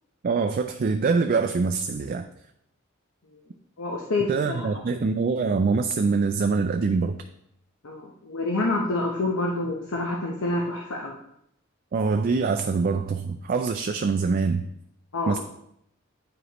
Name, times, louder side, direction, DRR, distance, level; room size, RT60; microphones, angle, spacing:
voice 1, 0.2-2.3 4.3-7.2 11.9-14.6 15.3-15.4, right 4 dB, 45° right, 7 dB, 0.3 m, -24 dB
voice 2, 3.8-4.7 7.8-11.2 15.1-15.4, left 2 dB, 85° left, -1 dB, 0.9 m, -27 dB
9.5 x 5.0 x 3.0 m, 0.75 s
head